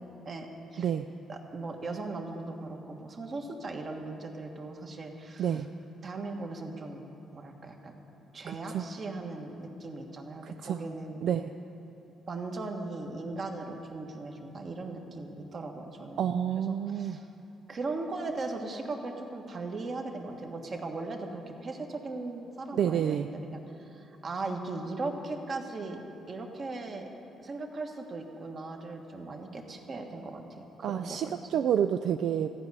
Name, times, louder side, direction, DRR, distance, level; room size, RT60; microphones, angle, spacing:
voice 1, 0.2-0.9 1.3-5.6 6.0-8.0 8.3-11.2 12.3-17.3 17.7-26.0 26.3-27.1 27.4-31.4, right 3 dB, 45° right, 2 dB, 1.4 m, -38 dB
voice 2, 8.5-8.8 10.4-10.8 11.2-11.5 16.2-17.2 22.7-23.3 30.8-32.5, right 9 dB, 70° right, 8 dB, 0.3 m, -29 dB
14.5 x 5.2 x 9.6 m, 2.9 s
cardioid pair, 90°, 0 cm